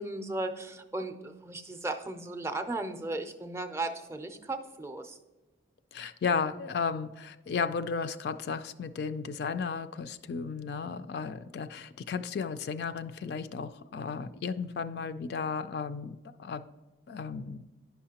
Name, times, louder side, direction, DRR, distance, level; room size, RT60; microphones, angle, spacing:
voice 1, 0.0-5.2, right 2 dB, 15° right, 7 dB, 0.5 m, -36 dB
voice 2, 5.9-16.6 17.1-17.6, left 5 dB, 60° left, 11 dB, 0.3 m, -34 dB
10.0 x 5.6 x 2.8 m, 1.1 s
head